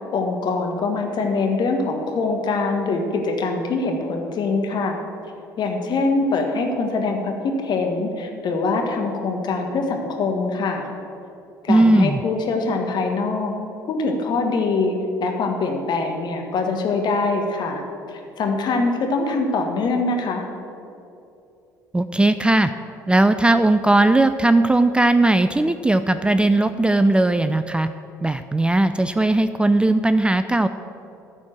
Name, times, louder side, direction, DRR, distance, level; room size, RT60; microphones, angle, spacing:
voice 1, 0.1-5.0 5.6-10.9 11.6-13.6 13.9-14.9 15.2-17.8 18.1-20.4, left 3 dB, 50° left, 3 dB, 1.6 m, -23 dB
voice 2, 11.7-12.2 21.9-22.7 23.1-27.9 28.2-30.7, right 2 dB, 10° right, 11 dB, 0.4 m, -18 dB
13.5 x 4.5 x 7.6 m, 2.7 s
hypercardioid pair, 60°, 10 cm